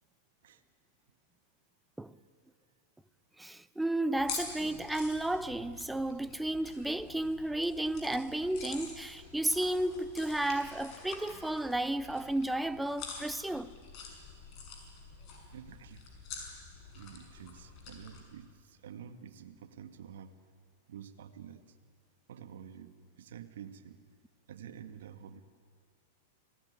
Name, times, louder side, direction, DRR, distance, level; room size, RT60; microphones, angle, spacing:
voice 1, 3.4-13.8, right 1 dB, 5° right, 0.7 m, -33 dB
sound 1, 4.2-18.2, left 4 dB, 45° left, 6.0 m, -47 dB
voice 2, 15.5-16.1 16.9-20.3 20.9-21.8 22.3-24.0 24.5-25.4, right 8 dB, 75° right, 1.8 m, -49 dB
26.0 x 18.0 x 9.8 m
hypercardioid pair, 120°, 0 cm